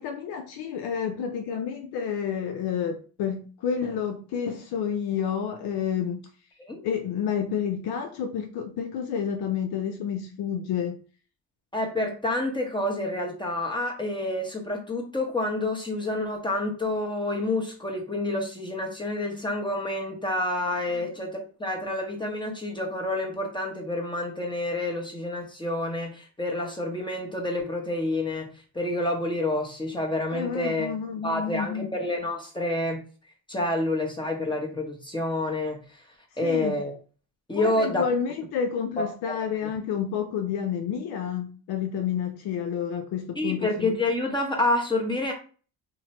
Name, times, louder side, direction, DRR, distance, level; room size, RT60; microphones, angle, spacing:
voice 1, 0.0-6.2 6.8-11.0 20.9-21.1 30.3-31.9 36.4-36.8 37.5-44.0, left 7 dB, 65° left, 0.5 m, -30 dB
voice 2, 11.7-28.5 28.7-30.9 31.2-33.0 33.5-36.0 36.4-36.9 37.5-38.0 39.0-39.4 43.4-45.3, left 2 dB, 10° left, 0.9 m, -28 dB
2.8 x 2.1 x 2.8 m
supercardioid pair, 65°, 43 cm